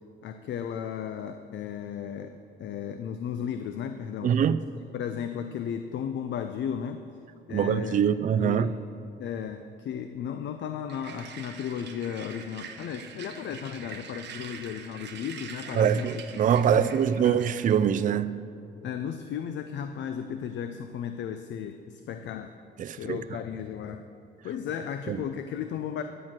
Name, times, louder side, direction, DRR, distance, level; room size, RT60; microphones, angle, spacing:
voice 1, 0.2-4.3 4.9-7.0 7.5-8.0 8.4-8.7 9.2-16.2 16.6-17.4 18.8-22.5 22.9-24.1 24.4-26.0, left 8 dB, 65° left, 0.5 m, -35 dB
voice 2, 4.2-4.7 7.5-8.7 15.8-18.4 22.8-23.2 25.1-25.2, right 8 dB, 40° right, 0.4 m, -24 dB
sound 1, 10.9-18.0, right 7 dB, 60° right, 0.9 m, -44 dB
11.0 x 4.5 x 7.5 m
cardioid pair, 90°, 20 cm